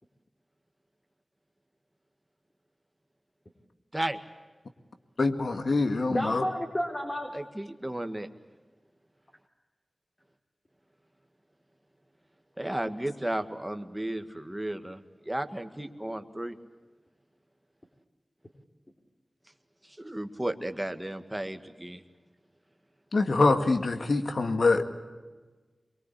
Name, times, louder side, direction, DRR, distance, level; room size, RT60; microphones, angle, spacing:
voice 1, 5.2-6.4 23.1-24.8, left 3 dB, 75° left, 7 dB, 2.0 m, -24 dB
voice 2, 6.1-7.3, equal, 35° left, -1 dB, 4.0 m, -30 dB
voice 3, 7.3-8.3 12.6-16.6 19.8-22.0, right 1 dB, 15° right, 8 dB, 1.9 m, -34 dB
24.0 x 23.0 x 8.6 m, 1.3 s
wide cardioid pair, 55°, 0 cm